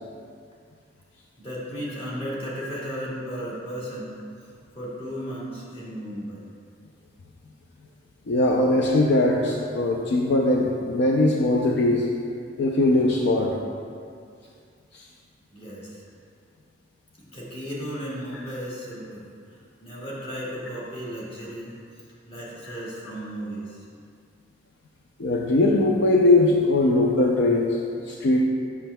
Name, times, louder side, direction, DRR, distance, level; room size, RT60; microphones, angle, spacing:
voice 1, 1.4-4.2 4.7-6.5 15.5-16.0 17.2-19.3 19.8-21.7 22.3-23.8, equal, 30° left, -6 dB, 1.3 m, -35 dB
voice 2, 8.3-12.0 12.6-13.5 25.2-27.7 28.1-28.4, left 2 dB, 65° left, -1 dB, 0.4 m, -20 dB
7.2 x 6.1 x 2.2 m, 2.3 s
head